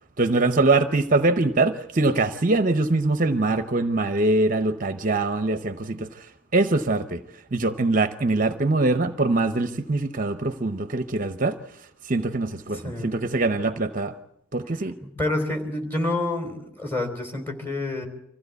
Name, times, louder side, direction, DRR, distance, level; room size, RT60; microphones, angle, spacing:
voice 1, 0.2-14.1 14.5-14.9, right 2 dB, 40° right, 10 dB, 0.8 m, -23 dB
voice 2, 12.7-13.2 14.7-18.1, left 2 dB, 10° left, 4 dB, 3.3 m, -28 dB
25.0 x 15.5 x 8.2 m, 0.77 s
head